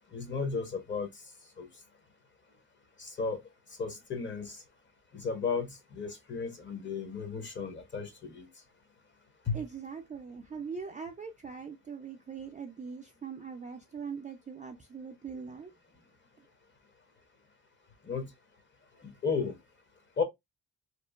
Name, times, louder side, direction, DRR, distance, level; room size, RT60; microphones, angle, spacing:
voice 1, 0.1-1.1 1.6-1.7 3.0-3.4 3.8-4.6 5.1-8.5 9.5-9.6 18.0-18.3 19.0-19.6 20.2-20.3, left 5 dB, 30° left, 0.7 m, -34 dB
voice 2, 9.5-15.7, right 6 dB, 20° right, 0.3 m, -41 dB
2.9 x 2.4 x 2.2 m
cardioid pair, 100°, 37 cm